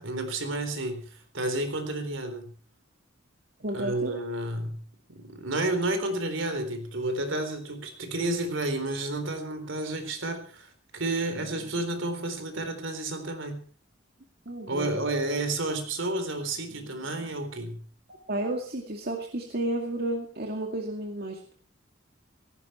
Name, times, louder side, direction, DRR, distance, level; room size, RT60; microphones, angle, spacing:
voice 1, 0.0-2.5 3.7-4.8 5.1-13.6 14.7-17.8, right 2 dB, 65° right, 8 dB, 3.9 m, -31 dB
voice 2, 3.6-4.1 14.5-15.0 18.3-21.4, right 1 dB, 50° right, 2 dB, 2.2 m, -32 dB
17.5 x 15.5 x 4.4 m, 0.41 s
head